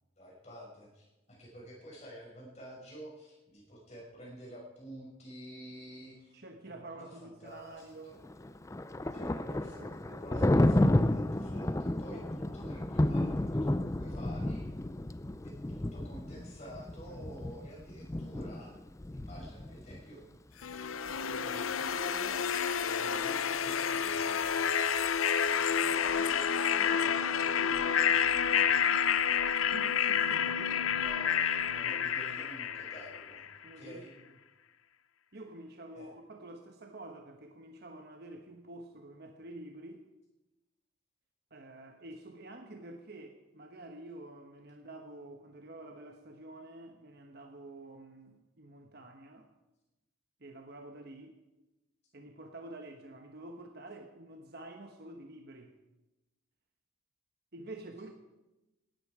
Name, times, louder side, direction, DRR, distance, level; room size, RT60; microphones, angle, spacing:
voice 1, 0.2-6.4 6.6-8.2 9.1-14.7 15.4-18.7 19.1-24.8 25.6-29.6 30.0-33.4 33.8-34.1 35.9-36.1, right 1 dB, 35° left, -3 dB, 6.1 m, -50 dB
voice 2, 6.3-8.2 9.2-10.2 26.2-26.5 29.7-30.9 33.6-34.0 35.3-40.1 41.5-49.5 50.4-51.4 52.1-55.7 57.5-58.1, right 2 dB, 50° right, 4 dB, 1.2 m, -48 dB
Thunder, 8.2-20.0, left 1 dB, 15° left, 0.4 m, -31 dB
sound 1, 20.6-33.5, left 7 dB, 85° left, 0.7 m, -29 dB
18.0 x 13.0 x 4.9 m, 1.0 s
head